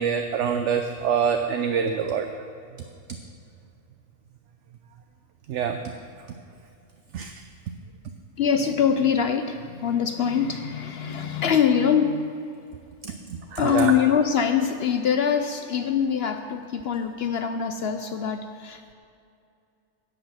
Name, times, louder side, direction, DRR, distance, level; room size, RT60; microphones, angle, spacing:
voice 1, 0.0-2.3 5.5-5.8 7.1-7.3 13.0-13.9, right 7 dB, 65° right, 6 dB, 0.8 m, -25 dB
voice 2, 8.4-12.4 13.1-13.2 13.6-18.9, left 7 dB, 65° left, 7 dB, 0.6 m, -24 dB
10.0 x 7.9 x 6.2 m, 2.5 s
omnidirectional pair, 1.4 m